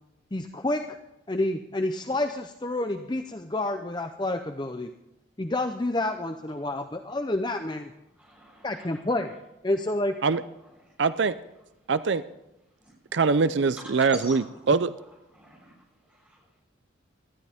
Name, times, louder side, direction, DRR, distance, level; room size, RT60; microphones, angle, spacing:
voice 1, 0.3-1.0 1.3-4.9 5.4-7.9 8.6-9.3 9.6-10.1, left 2 dB, 25° left, 7 dB, 0.6 m, -29 dB
voice 2, 6.4-7.2 7.8-7.9 8.1-9.4 9.9-11.0 11.5-11.9 12.3-12.4 12.7-14.7 15.0-16.6, right 1 dB, 5° right, -3 dB, 6.6 m, -50 dB
voice 3, 11.0-11.3 11.9-12.2 13.1-14.9, right 4 dB, 70° right, 14 dB, 0.5 m, -23 dB
19.0 x 13.5 x 3.6 m, 0.90 s
head